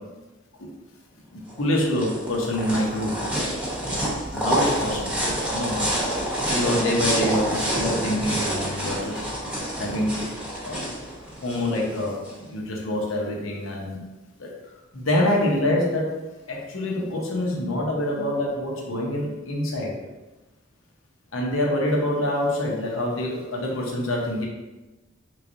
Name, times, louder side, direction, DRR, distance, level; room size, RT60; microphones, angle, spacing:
voice 1, 1.3-3.2 4.3-6.0 6.5-9.2 9.8-10.3 10.6-10.8 11.4-14.0 14.4-14.5 14.9-16.1 16.5-19.9 21.3-24.5, left 1 dB, 85° left, -2 dB, 0.9 m, -26 dB
sound 1, 1.5-12.3, right 1 dB, 5° right, 0.8 m, -27 dB
3.9 x 3.1 x 2.6 m, 1.1 s
head